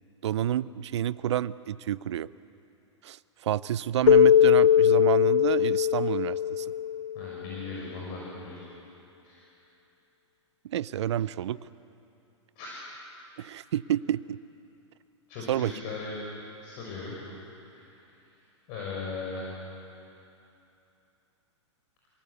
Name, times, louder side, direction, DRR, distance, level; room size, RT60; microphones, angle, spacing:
voice 1, 0.0-2.3 3.0-6.7 10.6-11.6 13.4-14.4 15.5-15.7, right 11 dB, 65° right, 19 dB, 0.6 m, -29 dB
Keyboard (musical), 4.1-7.3, left 9 dB, 80° left, 0.6 m, -20 dB
voice 2, 7.1-8.6 9.2-9.4 12.6-12.7 15.3-16.1 16.6-17.2 17.7-17.9 18.7-19.5, left 4 dB, 45° left, -3 dB, 6.0 m, -38 dB
27.0 x 18.5 x 8.3 m, 2.8 s
hypercardioid pair, 110°, 16 cm